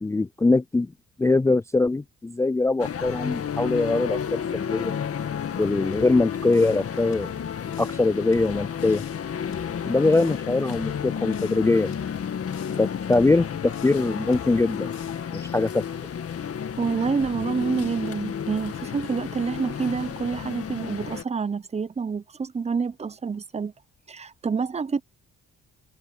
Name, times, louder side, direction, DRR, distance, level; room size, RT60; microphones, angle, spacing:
voice 1, 0.0-0.9 1.2-5.0 5.6-7.3 7.8-9.0 9.9-11.9 12.8-14.9 15.3-15.8, left 3 dB, 10° left, 0.3 m, -22 dB
sound 1, 2.8-21.2, left 8 dB, 50° left, 1.9 m, -32 dB
sound 2, 5.9-6.9 7.1-8.0 8.3-9.2 9.5-10.4 10.7-11.6 11.9-12.8 13.1-14.1 14.3-15.2, left 10 dB, 65° left, 2.8 m, -46 dB
voice 2, 16.8-23.7 24.1-25.0, right 5 dB, 20° right, 0.7 m, -27 dB
cardioid pair, 90°, 30 cm